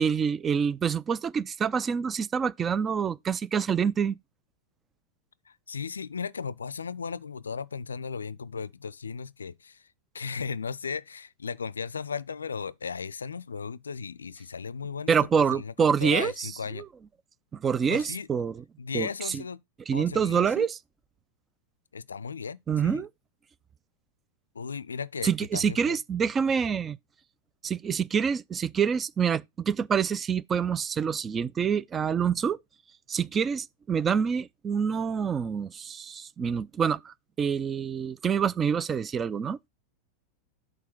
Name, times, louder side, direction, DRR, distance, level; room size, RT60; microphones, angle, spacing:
voice 1, 0.0-4.2 15.1-16.5 16.8-16.9 17.5-18.6 18.9-19.4 19.9-20.8 22.7-23.1 25.2-27.0 27.6-32.6 33.1-39.6, right 7 dB, 20° right, 0.4 m, -26 dB
voice 2, 5.5-9.9 10.1-15.7 16.0-16.8 17.9-18.3 18.8-19.6 19.9-20.7 21.9-23.0 24.5-26.0, left 5 dB, 75° left, 0.4 m, -36 dB
6.5 x 3.6 x 5.9 m
figure-of-eight pair, 90°, 0 cm